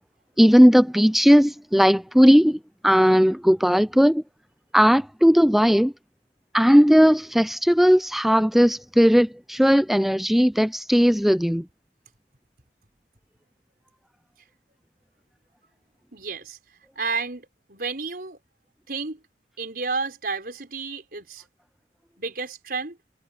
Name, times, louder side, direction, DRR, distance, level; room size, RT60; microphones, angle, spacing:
voice 1, 0.4-4.2 4.7-5.9 6.5-11.7, equal, ahead, 0.4 m, -17 dB
voice 2, 16.1-16.6 17.0-18.4 18.9-19.2 19.6-21.4 22.2-23.0, right 4 dB, 55° right, 5.7 m, -31 dB
head